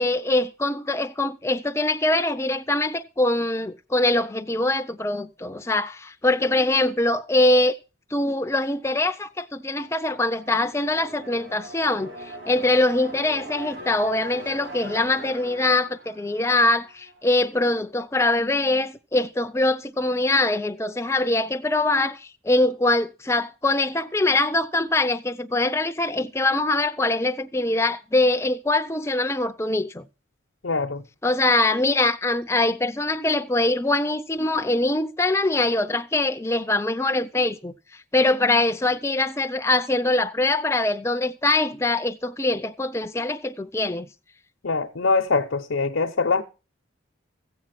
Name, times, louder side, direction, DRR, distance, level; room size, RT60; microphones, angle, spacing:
voice 1, 0.0-7.8 8.1-30.0 31.2-44.1, left 2 dB, 15° left, 0.5 m, -23 dB
sound 1, 9.5-17.3, equal, 65° right, 4.3 m, -41 dB
voice 2, 30.6-31.0 44.6-46.4, left 4 dB, 75° left, 0.9 m, -23 dB
15.5 x 7.4 x 5.9 m
head